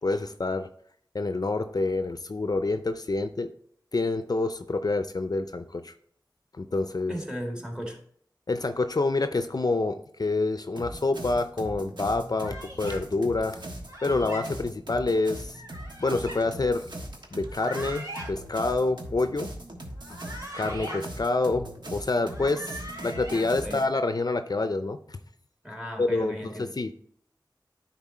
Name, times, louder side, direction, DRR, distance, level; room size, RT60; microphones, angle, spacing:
voice 1, 0.0-0.7 1.1-3.5 3.9-5.9 6.6-7.1 8.5-13.6 14.0-15.6 16.0-16.9 17.3-19.5 20.1-20.2 20.5-22.8 23.0-25.2 26.0-26.4 26.8-26.9, left 3 dB, 55° left, 9 dB, 0.5 m, -27 dB
voice 2, 7.1-8.0 23.5-23.8 25.6-26.7, equal, 10° right, 2 dB, 1.8 m, -35 dB
sound 1, 10.8-23.8, right 1 dB, 70° right, 1.3 m, -40 dB
sound 2, 12.4-13.0 13.9-14.4 15.5-16.4 17.4-18.3 20.0-21.0 22.1-23.4, right 1 dB, 45° right, 2.7 m, -40 dB
9.8 x 4.0 x 4.2 m, 0.64 s
wide cardioid pair, 45°, 8 cm